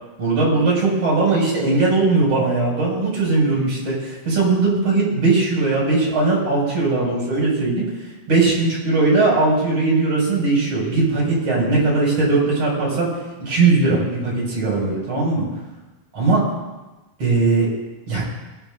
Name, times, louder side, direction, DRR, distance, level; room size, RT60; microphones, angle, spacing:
voice 1, 0.2-7.9 8.3-13.1 13.4-15.5 16.1-16.5 17.2-17.7 18.1-18.2, right 3 dB, 40° right, -5 dB, 7.2 m, -19 dB
20.5 x 14.5 x 2.7 m, 1.1 s
omnidirectional pair, 4.2 m